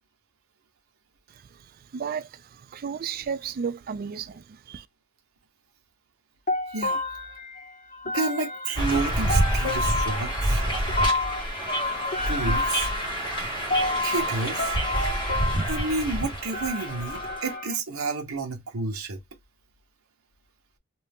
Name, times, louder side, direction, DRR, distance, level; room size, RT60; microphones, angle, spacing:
voice 1, 1.3-4.9, right 6 dB, 45° right, 0.3 m, -34 dB
sound 1, 6.5-17.8, left 2 dB, 40° left, 1.4 m, -30 dB
voice 2, 6.7-7.0 8.1-10.6 12.3-12.9 14.0-14.7 15.7-19.2, right 3 dB, 75° right, 0.9 m, -30 dB
sound 2, 8.8-17.5, right 1 dB, 20° left, 1.5 m, -28 dB
2.7 x 2.6 x 3.5 m
head